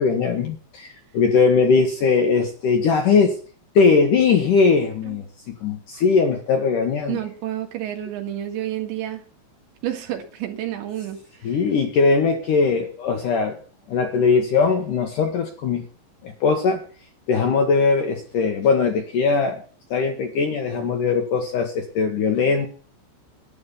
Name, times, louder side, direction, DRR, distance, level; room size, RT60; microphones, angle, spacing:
voice 1, 0.0-3.4 3.8-7.2 11.4-13.6 13.9-15.9 16.2-16.8 17.3-19.6 19.9-22.7, left 5 dB, 65° left, 4 dB, 2.2 m, -20 dB
voice 2, 7.1-9.2 9.8-11.2 11.5-11.6, right 12 dB, 75° right, 4 dB, 4.2 m, -29 dB
12.5 x 9.8 x 7.1 m, 0.40 s
omnidirectional pair, 5.3 m